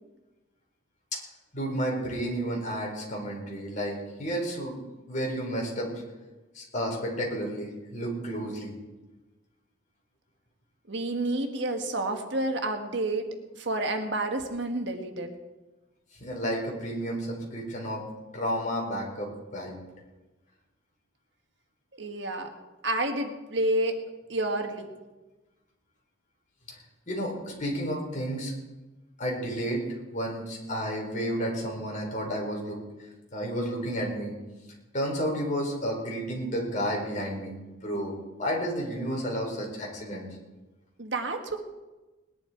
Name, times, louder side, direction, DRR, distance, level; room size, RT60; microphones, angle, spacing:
voice 1, 1.5-4.8 5.1-5.9 6.5-8.7 16.2-18.0 18.3-19.8 27.1-28.5 29.2-29.8 30.1-32.8 33.3-34.3 34.9-37.5 37.8-38.1 38.4-40.3, equal, 40° left, -1 dB, 4.5 m, -31 dB
voice 2, 10.9-13.3 13.6-15.3 21.9-22.5 22.8-24.0 24.3-24.9 41.0-41.6, right 2 dB, 65° right, 5 dB, 1.6 m, -29 dB
20.0 x 11.0 x 4.6 m, 1.1 s
head